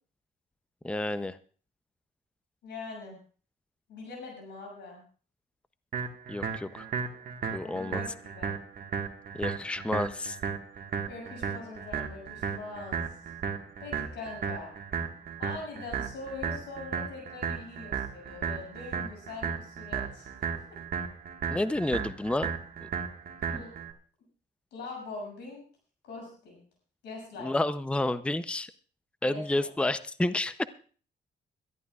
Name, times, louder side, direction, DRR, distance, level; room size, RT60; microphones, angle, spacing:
voice 1, 0.8-1.3 6.3-6.7 7.5-8.0 9.4-10.4 21.5-22.5 22.8-22.9 23.5-23.6 27.4-28.7 29.2-30.6, left 2 dB, 5° left, 13 dB, 0.6 m, -30 dB
voice 2, 2.6-3.2 3.9-5.0 7.6-8.5 11.1-13.2 13.8-14.7 15.4-20.3 20.7-20.8 23.5-23.7 24.7-25.6 26.0-26.6 27.0-27.5 29.2-29.7, left 3 dB, 90° left, 0 dB, 7.0 m, -42 dB
sound 1, 5.9-23.9, right 6 dB, 60° right, 1.6 m, -35 dB
22.5 x 13.5 x 2.4 m, 0.40 s
cardioid pair, 80°, 18 cm